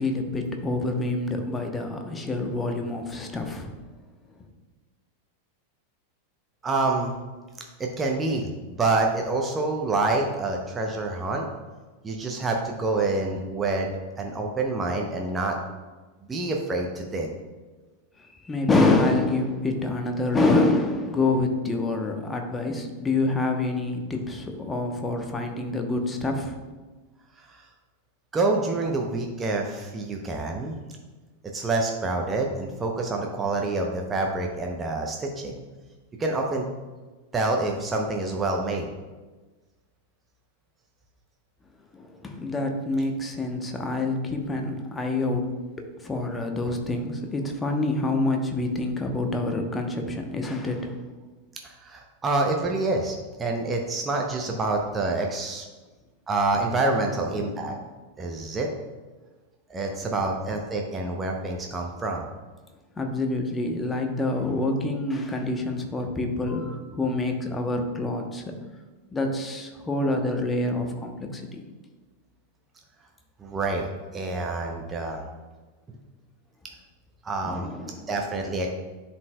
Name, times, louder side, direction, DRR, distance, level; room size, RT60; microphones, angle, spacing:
voice 1, 0.0-3.7 18.4-26.5 41.9-45.5 46.0-51.0 60.1-60.2 63.0-68.4 69.1-71.6 77.4-78.1, left 2 dB, 15° left, 4 dB, 0.8 m, -26 dB
voice 2, 6.6-7.1 7.6-11.4 12.0-13.9 14.2-15.6 16.3-17.3 27.4-27.6 28.3-30.8 31.5-35.5 36.2-36.7 37.3-38.9 51.6-55.7 56.3-57.7 58.2-58.7 59.7-62.3 73.4-75.2 77.2-77.7 78.1-78.7, right 2 dB, 15° right, 1 dB, 0.6 m, -27 dB
10.5 x 4.2 x 2.2 m, 1.3 s
figure-of-eight pair, 90°, 0 cm